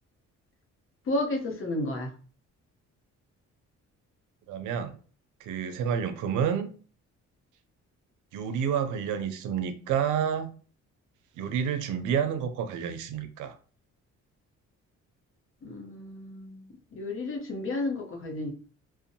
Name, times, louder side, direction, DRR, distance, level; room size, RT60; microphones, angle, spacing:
voice 1, 1.1-2.1 15.6-18.5, left 2 dB, 45° left, 3 dB, 0.7 m, -32 dB
voice 2, 4.5-5.0 5.4-6.7 8.3-10.5 11.4-13.6, right 8 dB, 85° right, 8 dB, 0.5 m, -29 dB
2.5 x 2.1 x 2.6 m, 0.39 s
cardioid pair, 90°, 30 cm